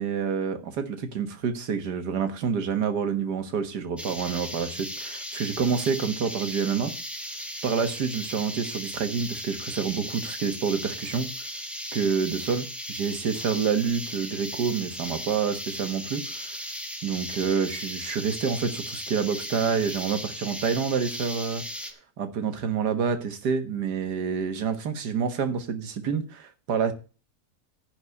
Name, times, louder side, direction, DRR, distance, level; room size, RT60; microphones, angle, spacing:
voice 1, 0.0-6.9 7.6-11.3 11.9-16.6 17.0-21.6 22.2-26.9, right 6 dB, 75° right, 1.9 m, -28 dB
sound 1, 4.0-21.9, equal, ahead, 1.5 m, -36 dB
10.5 x 4.9 x 8.1 m
omnidirectional pair, 1.8 m